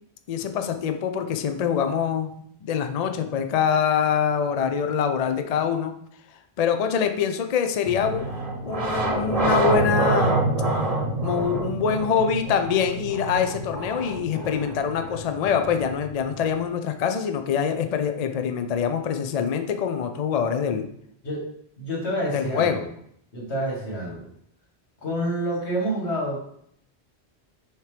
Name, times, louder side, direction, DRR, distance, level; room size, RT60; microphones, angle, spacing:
voice 1, 0.3-2.3 2.6-5.9 6.6-8.3 8.6-10.4 11.2-20.9 22.3-22.8, left 7 dB, 50° left, 6 dB, 0.5 m, -24 dB
sound 1, 7.8-16.6, right 2 dB, 35° right, 0.9 m, -27 dB
voice 2, 21.8-22.9 23.3-24.3 25.0-26.4, equal, 90° left, -2 dB, 2.0 m, -28 dB
6.5 x 3.0 x 4.9 m, 0.69 s
omnidirectional pair, 1.1 m